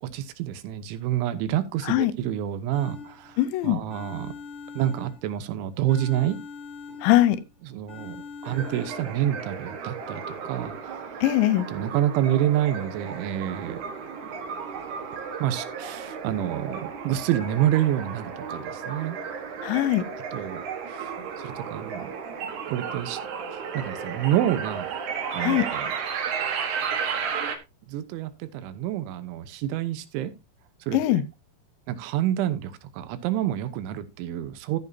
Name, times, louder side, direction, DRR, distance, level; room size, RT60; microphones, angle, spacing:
voice 1, 0.0-4.3 4.8-6.4 7.6-8.2 8.4-11.2 11.7-13.8 15.1-19.2 20.3-21.1 21.4-22.1 22.7-23.2 23.5-24.9 25.3-25.9 27.9-30.3 30.9-31.2 31.9-34.8, right 12 dB, 80° right, 3.4 m, -28 dB
sound 1, 2.7-3.5 3.9-5.5 5.9-7.5 7.9-9.3, left 5 dB, 30° left, 2.2 m, -42 dB
voice 2, 3.4-3.8 7.0-7.4 11.2-11.7 19.6-20.0 25.4-25.6 30.9-31.2, left 14 dB, 80° left, 2.9 m, -21 dB
sound 2, 8.4-27.6, right 6 dB, 65° right, 2.0 m, -34 dB
14.0 x 8.4 x 2.8 m
omnidirectional pair, 5.5 m